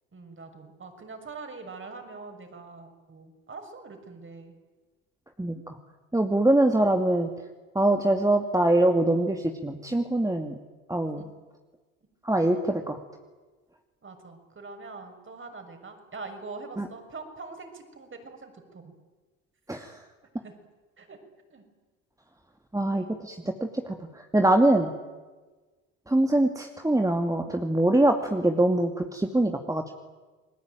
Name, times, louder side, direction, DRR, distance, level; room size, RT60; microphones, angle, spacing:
voice 1, 0.1-4.5 11.2-11.3 12.5-12.6 14.0-18.9 20.4-20.5 21.0-21.2 21.5-21.6, right 3 dB, 30° right, 6 dB, 6.5 m, -43 dB
voice 2, 5.4-5.8 6.1-7.3 7.7-10.6 10.9-11.3 12.2-13.0 16.8-16.9 19.7-20.0 22.7-24.9 26.1-29.9, right 1 dB, 10° right, 4 dB, 2.5 m, -24 dB
30.0 x 21.0 x 9.2 m, 1.3 s
hypercardioid pair, 65°, 40 cm